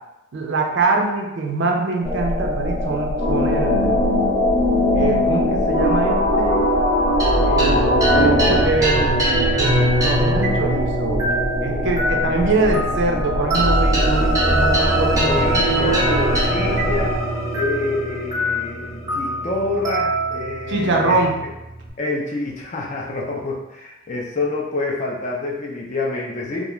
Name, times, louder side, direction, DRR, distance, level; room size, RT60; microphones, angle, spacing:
voice 1, 0.3-4.0 4.9-6.6 7.4-11.3 11.6-16.0 20.7-21.4, right 3 dB, 60° right, 1 dB, 0.4 m, -23 dB
sound 1, 2.0-17.2, equal, 5° left, 1.0 m, -25 dB
sound 2, 3.2-8.6, left 1 dB, 85° left, 1.0 m, -20 dB
sound 3, 7.2-21.9, right 1 dB, 15° right, 0.7 m, -22 dB
voice 2, 15.2-17.1 17.5-21.2 22.0-26.7, left 2 dB, 35° left, -2 dB, 0.5 m, -27 dB
2.3 x 2.3 x 3.0 m, 0.94 s
head